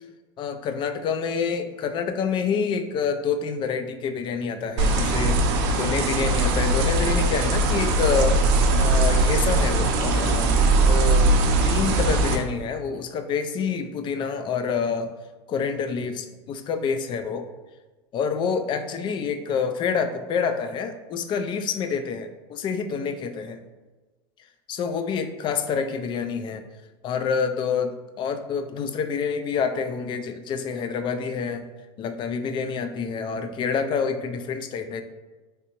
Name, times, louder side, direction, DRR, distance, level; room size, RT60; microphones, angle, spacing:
voice 1, 0.4-5.4 5.8-8.4 8.8-11.3 11.6-15.1 15.5-17.4 18.1-23.6 24.7-26.6 27.0-31.6 32.0-35.0, left 6 dB, 35° left, 8 dB, 0.3 m, -27 dB
sound 1, 4.8-12.4, right 2 dB, 65° right, 0.5 m, -20 dB
3.3 x 2.7 x 2.9 m, 1.2 s
supercardioid pair, 110°, 14 cm